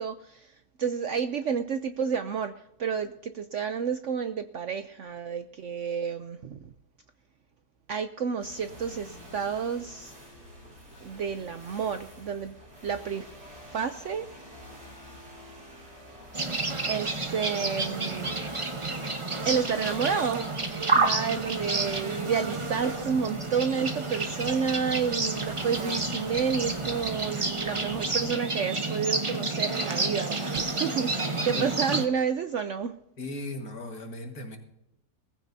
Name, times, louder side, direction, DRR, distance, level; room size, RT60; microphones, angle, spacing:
voice 1, 0.0-2.5 2.8-6.6 7.9-10.1 11.0-12.6 12.8-14.3 16.9-18.3 19.4-20.4 20.9-33.0, right 6 dB, 65° right, 9 dB, 0.8 m, -30 dB
sound 1, 8.4-28.3, equal, 40° right, 7.4 m, -47 dB
sound 2, 16.3-32.1, right 3 dB, 25° right, 0.8 m, -30 dB
voice 2, 33.2-34.6, left 2 dB, 60° left, 4 dB, 2.2 m, -37 dB
19.5 x 15.0 x 2.7 m, 0.83 s
omnidirectional pair, 1.8 m